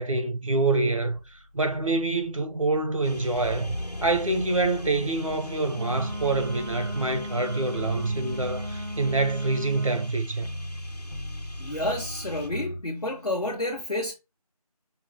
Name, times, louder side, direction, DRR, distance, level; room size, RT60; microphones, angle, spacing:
voice 1, 0.0-3.8 4.0-10.5, right 3 dB, 55° right, 0.8 m, -26 dB
sound 1, 1.2-12.8, equal, 45° left, 0.9 m, -40 dB
sound 2, 3.0-12.5, left 1 dB, 80° left, 1.3 m, -40 dB
Wind instrument woodwind instrument, 5.7-10.1, equal, 35° right, 0.4 m, -37 dB
voice 2, 11.6-14.1, left 1 dB, 65° left, 1.1 m, -30 dB
5.5 x 2.3 x 3.6 m
figure-of-eight pair, 165°, 20 cm